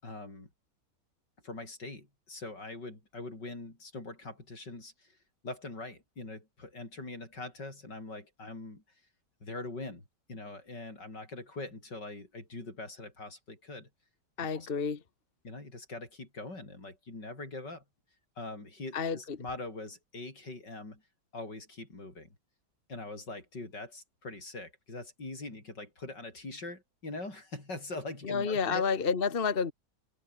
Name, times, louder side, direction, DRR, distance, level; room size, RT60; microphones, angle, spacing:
voice 1, 0.0-0.5 1.4-5.2 5.4-8.8 9.4-10.0 10.3-13.9 14.4-14.7 15.4-17.8 18.4-21.0 21.3-22.3 22.9-28.8, left 2 dB, 80° left, 7.4 m, -42 dB
voice 2, 14.4-15.0 18.9-19.4 28.2-29.7, left 5 dB, 35° left, 1.5 m, -30 dB
omnidirectional pair, 1.9 m